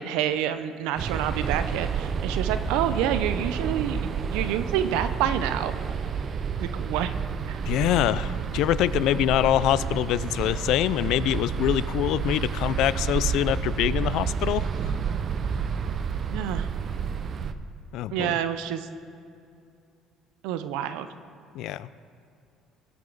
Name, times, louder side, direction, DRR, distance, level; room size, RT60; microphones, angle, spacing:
voice 1, 0.0-5.7 6.6-7.1 7.5-7.6 16.3-16.7 18.1-18.9 20.4-21.1, right 10 dB, 90° right, 11 dB, 0.5 m, -28 dB
sound 1, 1.0-17.5, right 6 dB, 45° right, 0.5 m, -30 dB
voice 2, 7.7-15.0 17.9-18.4 21.5-21.9, left 13 dB, 75° left, 17 dB, 0.3 m, -25 dB
18.0 x 8.0 x 4.0 m, 2.5 s
cardioid pair, 110°, 0 cm